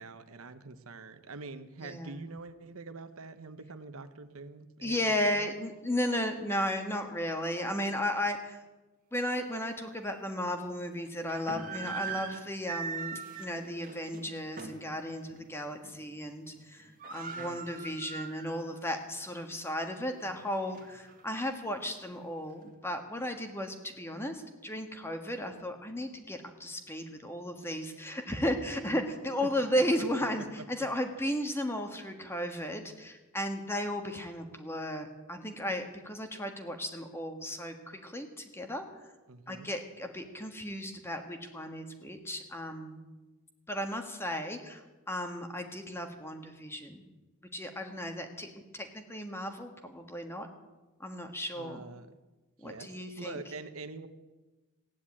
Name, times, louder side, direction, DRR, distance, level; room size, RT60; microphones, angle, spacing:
voice 1, 0.0-5.5 17.3-17.9 29.4-29.7 30.6-30.7 39.3-39.7 51.5-52.2 52.6-54.1, right 3 dB, 75° right, 10 dB, 1.0 m, -45 dB
voice 2, 1.8-2.2 4.8-8.6 9.1-38.9 39.5-43.0 43.7-47.0 47.5-50.5 51.0-51.8 52.6-53.4, left 1 dB, 10° left, 5 dB, 1.5 m, -35 dB
sound 1, 9.4-9.5 10.0-10.1 11.1-14.9 15.3-15.5 15.8-16.3 16.5-16.6 16.8-18.8 19.2-19.3 19.9-21.2, right 5 dB, 40° right, 1.7 m, -41 dB
15.5 x 10.0 x 8.6 m, 1.2 s
head